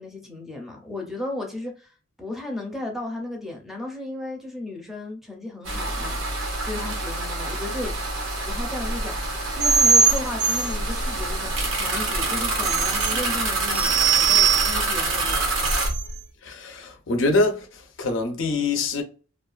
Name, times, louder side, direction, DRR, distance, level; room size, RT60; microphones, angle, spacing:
voice 1, 0.0-1.9 2.2-6.2 6.6-7.9 8.4-9.2 9.5-15.8, left 2 dB, ahead, 0.6 m, -34 dB
sound 1, 5.6-15.9, right 2 dB, 85° right, 0.9 m, -27 dB
sound 2, 9.6-16.2, right 6 dB, 55° right, 0.4 m, -23 dB
voice 2, 16.4-19.0, left 2 dB, 75° left, 0.6 m, -24 dB
2.4 x 2.3 x 2.3 m
head